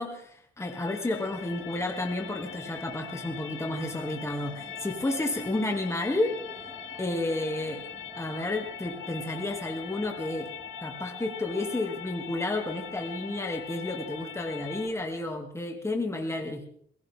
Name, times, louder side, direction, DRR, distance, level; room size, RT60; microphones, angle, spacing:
voice 1, 0.0-6.3 7.0-7.9 8.1-10.5 10.8-16.7, left 2 dB, 15° left, 2 dB, 2.8 m, -31 dB
sound 1, 0.6-14.9, left 9 dB, 75° left, 1.8 m, -42 dB
sound 2, 1.2-15.3, right 1 dB, 10° right, 7.0 m, -48 dB
21.5 x 16.5 x 3.8 m, 0.64 s
cardioid pair, 90°, 20 cm